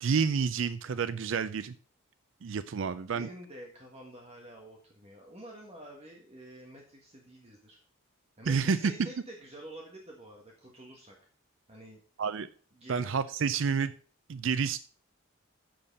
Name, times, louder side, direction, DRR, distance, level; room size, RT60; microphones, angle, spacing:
voice 1, 0.0-1.7 2.4-3.3 8.5-8.9 12.2-12.5 12.9-13.9 14.3-14.8, right 5 dB, 65° right, 13 dB, 0.4 m, -29 dB
voice 2, 3.1-7.8 8.4-11.2 11.7-12.0 12.7-13.0, right 1 dB, 30° right, -1 dB, 1.6 m, -48 dB
7.8 x 6.8 x 5.4 m, 0.42 s
head